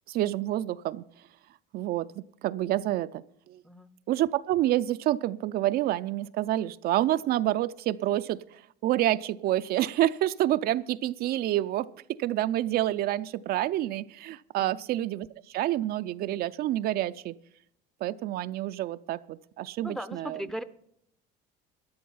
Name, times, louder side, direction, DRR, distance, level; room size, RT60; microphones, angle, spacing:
voice 1, 0.1-1.0 1.7-3.2 3.5-3.6 4.1-11.9 12.2-17.3 18.0-20.4, right 14 dB, 55° right, 12 dB, 0.4 m, -28 dB
voice 2, 19.8-20.6, equal, ahead, 13 dB, 0.6 m, -38 dB
13.5 x 10.5 x 5.5 m, 0.71 s
cardioid pair, 130°, 19 cm